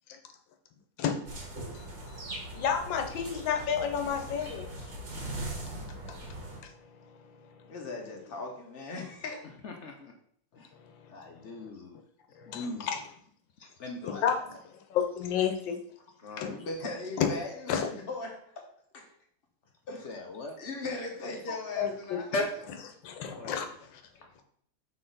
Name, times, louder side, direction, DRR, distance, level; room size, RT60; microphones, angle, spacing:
sound 1, 1.3-6.6, right 1 dB, 75° right, 2.3 m, -40 dB
voice 1, 2.5-4.7 6.3-6.7 12.4-13.0 14.0-14.3 14.9-15.8 16.4-16.5 17.2-17.3 17.7-17.9 21.8-22.2 23.0-23.7, left 8 dB, 85° left, 5 dB, 1.5 m, -30 dB
voice 2, 7.7-9.5 16.2-18.7 18.9-19.0 19.9-20.1 20.6-22.3, left 3 dB, 35° left, 1 dB, 1.0 m, -38 dB
voice 3, 9.4-10.1 10.5-10.7 11.1-12.0 12.5-12.9 13.6-14.6 16.3-16.5 19.9-20.6 22.3-22.6 23.2-23.6, left 2 dB, 60° left, 2 dB, 0.7 m, -38 dB
5.8 x 4.3 x 3.9 m, 0.64 s
omnidirectional pair, 2.0 m